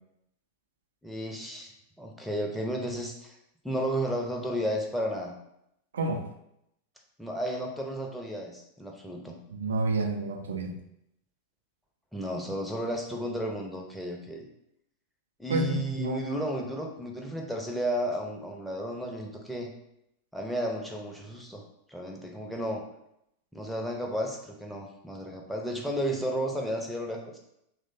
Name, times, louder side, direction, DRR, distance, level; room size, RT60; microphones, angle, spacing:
voice 1, 1.0-1.7 2.0-3.4 3.6-5.3 7.2-9.4 12.1-14.4 15.4-19.7 20.3-21.6 21.9-22.8 23.5-27.3, equal, ahead, 0 dB, 0.6 m, -33 dB
voice 2, 5.9-6.3 9.5-10.8 15.5-16.3, right 2 dB, 65° right, 4 dB, 0.4 m, -29 dB
3.0 x 2.1 x 4.0 m, 0.79 s
figure-of-eight pair, 90°, 0 cm